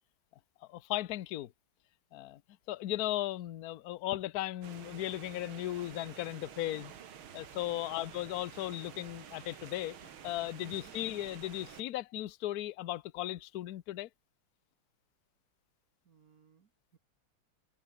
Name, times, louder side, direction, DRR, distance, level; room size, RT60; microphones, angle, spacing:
voice 1, 0.7-1.5 2.1-2.4 2.7-6.9 7.3-10.0 10.2-14.1, left 15 dB, 65° left, 1.0 m, -36 dB
sound 1, 4.6-11.8, right 9 dB, 70° right, 2.3 m, -50 dB
voice 2, 7.7-8.0 10.6-10.9 16.0-17.0, right 6 dB, 45° right, 1.7 m, -60 dB
omnidirectional pair, 2.4 m